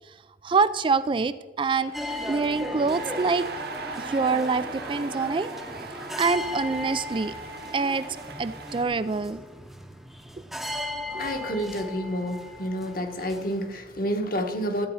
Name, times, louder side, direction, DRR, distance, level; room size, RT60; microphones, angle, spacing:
voice 1, 0.4-3.5 4.0-5.5 6.2-7.3 7.7-8.0 8.4-9.4, right 4 dB, 30° right, 14 dB, 0.3 m, -25 dB
sound 1, 1.6-8.8, right 4 dB, 60° right, 1.2 m, -40 dB
sound 2, 1.9-13.7, left 1 dB, ahead, 0.8 m, -37 dB
sound 3, 2.4-7.6, equal, 85° left, 3.7 m, -48 dB
voice 2, 11.1-14.9, equal, 55° left, 5 dB, 1.4 m, -29 dB
13.5 x 8.4 x 5.6 m, 1.3 s
head